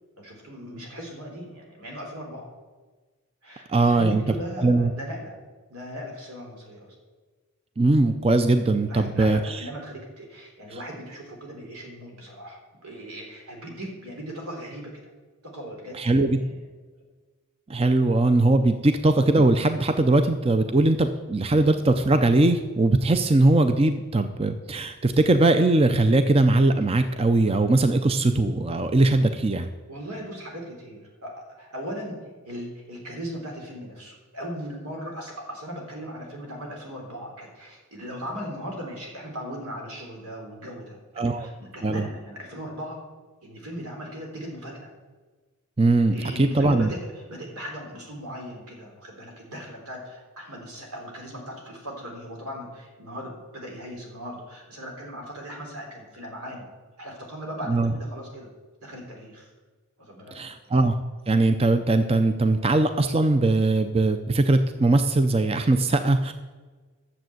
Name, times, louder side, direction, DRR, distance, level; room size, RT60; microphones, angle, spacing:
voice 1, 0.2-2.5 3.4-5.4 5.7-7.0 8.9-14.9 15.4-16.6 29.9-41.0 41.3-43.0 43.4-44.9 46.1-56.7 57.0-58.5 58.8-59.5 60.0-60.3, equal, 90° right, 0 dB, 3.6 m, -38 dB
voice 2, 3.7-4.2 4.6-4.9 7.8-9.7 16.0-16.4 17.7-29.7 41.2-41.5 41.8-42.0 45.8-46.9 57.7-57.9 60.3-61.0 61.3-66.3, right 2 dB, 25° right, 9 dB, 0.5 m, -20 dB
12.0 x 7.3 x 7.8 m, 1.3 s
head